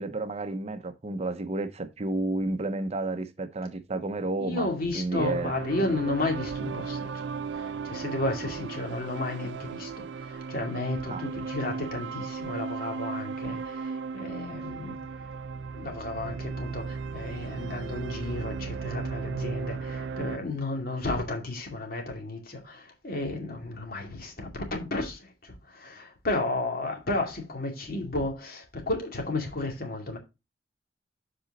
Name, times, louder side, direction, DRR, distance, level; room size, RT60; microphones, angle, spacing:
voice 1, 0.0-5.6 11.1-11.2, right 2 dB, 35° right, 0.7 m, -31 dB
voice 2, 4.4-15.0 15.7-30.2, left 2 dB, 55° left, 2.4 m, -33 dB
sound 1, 5.2-20.4, right 5 dB, 80° right, 0.4 m, -36 dB
7.8 x 5.0 x 4.0 m
head